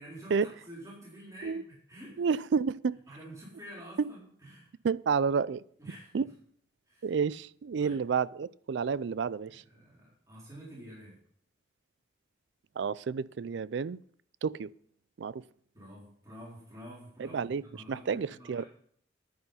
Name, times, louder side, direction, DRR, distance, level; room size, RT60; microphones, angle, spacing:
voice 1, 0.0-2.2 3.1-4.7 5.8-6.3 6.9-7.1 7.8-8.0 9.6-11.2 15.7-18.7, equal, 15° right, 4.0 m, -49 dB
voice 2, 2.2-3.0 4.0-4.1 4.8-5.6 6.1-6.3 7.0-9.6 12.8-14.0 14.4-14.7 15.2-15.4 17.2-17.6 17.9-18.6, right 5 dB, 75° right, 0.4 m, -30 dB
10.5 x 9.5 x 5.6 m
head